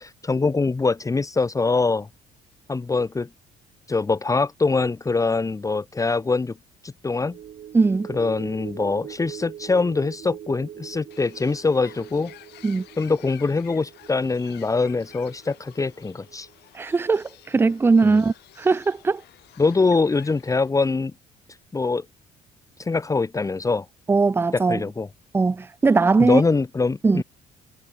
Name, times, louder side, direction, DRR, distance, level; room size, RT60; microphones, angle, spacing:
voice 1, 0.0-2.1 2.7-3.3 3.9-6.6 6.8-7.4 8.1-12.3 13.0-16.5 18.0-18.2 19.6-21.1 21.7-22.1 22.8-23.9 24.5-25.1 26.2-27.2, left 3 dB, 20° left, 1.8 m, -23 dB
sound 1, 7.2-17.8 18.2-18.3, right 10 dB, 55° right, 2.5 m, -43 dB
voice 2, 7.7-8.1 12.6-12.8 16.8-19.2 24.1-24.8 25.3-26.4 27.0-27.2, right 4 dB, 15° right, 0.5 m, -20 dB
Bird, 11.1-20.7, left 16 dB, 80° left, 7.8 m, -51 dB
cardioid pair, 110°, 17 cm